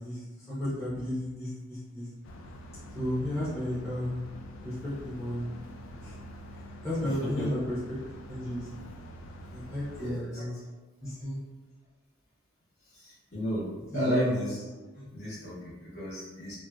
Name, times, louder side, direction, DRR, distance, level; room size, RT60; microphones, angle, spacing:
voice 1, 0.0-2.1 2.9-4.2 4.6-5.5 6.0-6.2 6.8-7.8 8.3-8.7 9.5-10.6 11.0-11.4 13.9-14.4 14.9-15.2, left 1 dB, 15° left, -12 dB, 0.7 m, -33 dB
sound 1, 2.2-10.1, equal, 70° left, 0.3 m, -45 dB
voice 2, 7.0-7.6 10.0-10.4 12.9-14.6 15.1-16.5, equal, 55° left, -9 dB, 1.2 m, -34 dB
2.6 x 2.3 x 2.2 m, 1.2 s
head